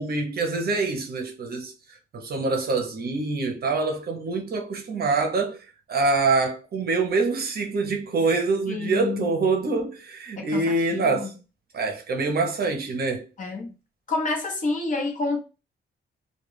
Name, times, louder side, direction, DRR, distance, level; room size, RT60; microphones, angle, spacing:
voice 1, 0.0-1.7 2.1-11.3 11.7-13.3, right 3 dB, 50° right, 0.6 m, -25 dB
voice 2, 8.7-9.3 10.4-10.6 10.9-11.3 13.4-13.7 14.1-15.4, left 3 dB, 40° left, 0.8 m, -28 dB
2.2 x 2.2 x 3.1 m
wide cardioid pair, 130°, 20 cm